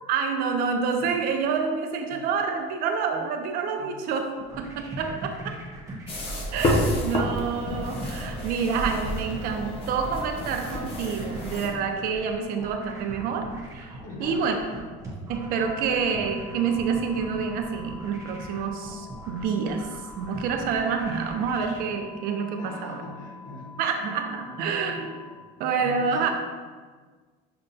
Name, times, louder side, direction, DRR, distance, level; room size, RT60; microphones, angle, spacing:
voice 1, 0.0-5.4 6.5-13.5 13.7-14.6 15.3-19.9 20.2-23.0 23.8-25.2 25.6-26.3, right 6 dB, 55° right, 4 dB, 0.5 m, -28 dB
sound 1, 4.4-21.8, right 2 dB, 15° right, 0.7 m, -41 dB
sound 2, 6.1-11.7, left 1 dB, 30° left, 0.6 m, -29 dB
voice 2, 14.0-14.5 15.6-15.7 22.6-24.1 24.4-24.5 24.9-25.3 25.8-26.3, left 2 dB, 50° left, -2 dB, 1.1 m, -42 dB
sound 3, 15.3-25.3, left 4 dB, ahead, 0.3 m, -47 dB
6.6 x 2.2 x 2.6 m, 1.4 s
cardioid pair, 170°, 18 cm